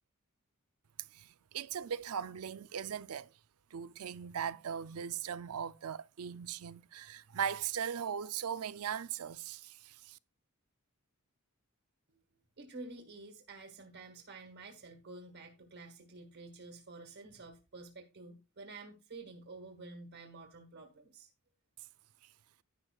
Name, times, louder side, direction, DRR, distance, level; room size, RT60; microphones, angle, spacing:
voice 1, 1.5-3.3 3.7-10.2, right 8 dB, 70° right, 0.5 m, -39 dB
voice 2, 12.6-21.3, right 3 dB, 55° right, 1.6 m, -50 dB
11.0 x 10.5 x 2.3 m
head